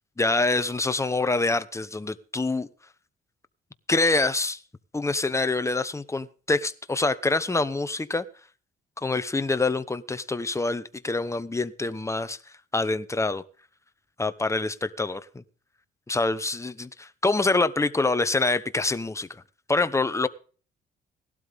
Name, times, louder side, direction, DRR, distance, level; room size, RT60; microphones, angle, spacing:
voice 1, 0.2-2.7 3.9-4.6 4.9-8.2 9.0-12.4 12.7-13.4 14.2-15.2 16.1-19.3 19.7-20.3, left 3 dB, 15° left, 12 dB, 1.0 m, -25 dB
17.5 x 12.0 x 3.6 m, 0.39 s
cardioid pair, 90°, 20 cm